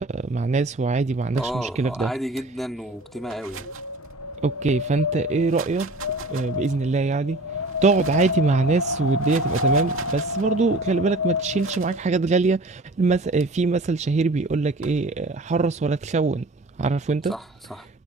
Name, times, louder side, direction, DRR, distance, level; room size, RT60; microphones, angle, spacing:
voice 1, 0.0-2.1 4.4-5.9 6.3-7.4 7.8-16.5 16.8-17.3, right 4 dB, 30° right, 0.3 m, -23 dB
voice 2, 1.3-3.7 17.2-17.9, equal, ahead, 3.6 m, -32 dB
sound 1, 1.3-2.0 3.0-4.6 5.3-6.9 7.5-8.5 9.0-10.5 11.6-12.0 13.1-13.4 14.5-15.1, right 6 dB, 65° right, 2.6 m, -41 dB
Wind, 2.9-12.1, left 3 dB, 80° left, 1.2 m, -29 dB
head